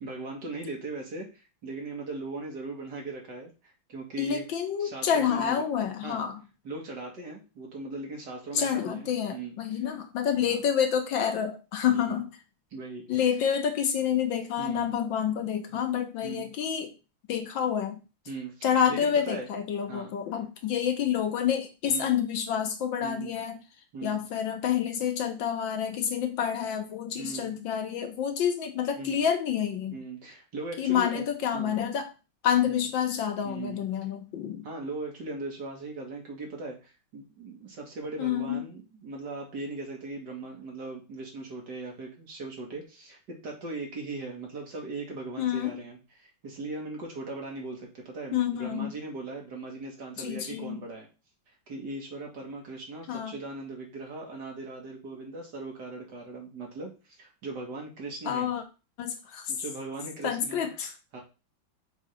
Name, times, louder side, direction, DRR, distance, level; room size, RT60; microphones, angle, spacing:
voice 1, 0.0-4.4 4.8-5.6 6.0-6.2 6.6-9.8 11.9-12.2 12.7-13.2 14.6-15.0 15.7-15.8 16.2-16.5 18.3-19.5 19.9-20.1 21.9-22.2 23.0-23.3 23.9-24.2 27.2-27.6 29.0-29.2 29.9-31.2 31.5-31.8 32.6-32.7 33.4-33.9 34.6-51.1 51.7-56.9 57.2-58.5 59.5-60.7 61.1-61.2, right 3 dB, 60° right, 0 dB, 2.4 m, -39 dB
voice 2, 4.2-6.4 8.5-12.3 13.1-16.9 17.3-18.0 18.6-23.6 24.0-30.0 30.8-32.1 32.4-34.7 38.2-38.7 45.4-45.8 48.3-48.9 50.2-50.8 53.1-53.4 58.2-58.6 59.0-59.5 60.2-60.9, left 8 dB, 75° left, 6 dB, 1.7 m, -28 dB
6.3 x 3.7 x 5.0 m, 0.31 s
omnidirectional pair, 2.1 m